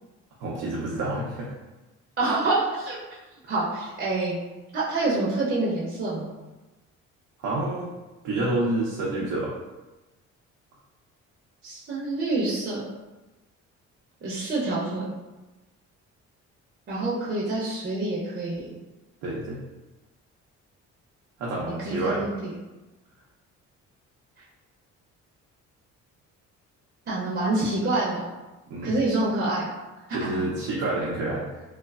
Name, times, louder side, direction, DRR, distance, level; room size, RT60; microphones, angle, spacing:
voice 1, 0.4-1.5 7.4-7.9 8.2-9.5 19.2-19.6 21.4-22.3 28.7-28.9 30.1-31.6, right 2 dB, 90° right, -5 dB, 0.6 m, -28 dB
voice 2, 2.2-3.0 3.5-4.4 4.7-6.3 11.6-12.8 14.2-15.0 16.9-18.7 21.8-22.5 27.1-28.2 28.8-29.7 30.2-30.4, right 2 dB, 35° right, -7 dB, 0.6 m, -27 dB
3.1 x 2.0 x 2.3 m, 1.1 s
cardioid pair, 105°, 29 cm